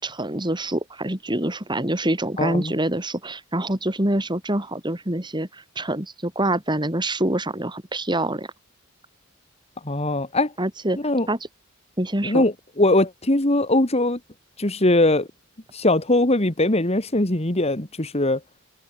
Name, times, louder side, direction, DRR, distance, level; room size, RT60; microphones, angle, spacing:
voice 1, 0.0-8.5 10.6-11.0 11.3-11.4 12.0-12.4, right 1 dB, 20° right, 3.8 m, -25 dB
voice 2, 2.4-2.7 9.9-10.5 11.0-11.3 12.2-14.2 14.6-15.3 15.7-18.4, left 2 dB, 30° left, 2.0 m, -21 dB
head